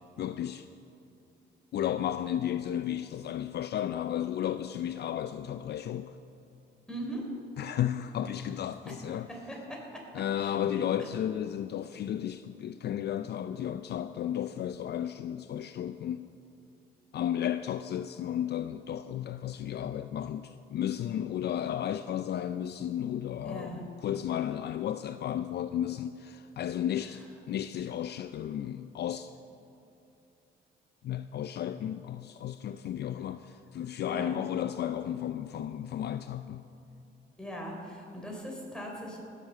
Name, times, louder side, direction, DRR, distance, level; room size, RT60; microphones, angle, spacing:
voice 1, 0.2-0.7 1.7-6.1 7.6-9.3 10.1-16.3 17.1-29.3 31.0-36.6, left 10 dB, 55° left, 0.4 m, -33 dB
voice 2, 6.9-7.2 9.5-10.0 10.4-10.8 23.4-23.8 34.1-34.4 37.4-39.2, right 1 dB, 5° left, 3.6 m, -40 dB
15.5 x 7.5 x 6.7 m
cardioid pair, 90°, 20 cm